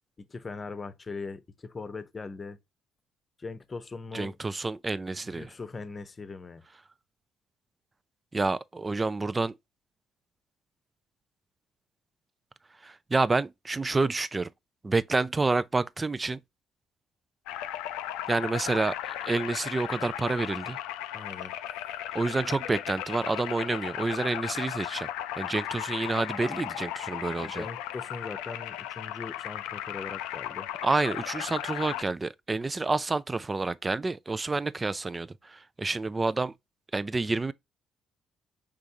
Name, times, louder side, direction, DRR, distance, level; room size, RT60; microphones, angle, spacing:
voice 1, 0.3-2.6 3.4-4.4 5.2-6.6 21.1-21.5 27.3-30.7, left 4 dB, 35° left, 0.8 m, -40 dB
voice 2, 4.1-5.5 8.3-9.6 12.8-14.5 14.8-16.4 18.3-20.8 22.1-25.1 25.4-27.7 30.8-36.5 36.9-37.5, right 3 dB, 25° right, 0.5 m, -29 dB
sound 1, 17.5-32.0, left 12 dB, 75° left, 0.4 m, -36 dB
5.2 x 3.4 x 2.7 m
hypercardioid pair, 50°, 0 cm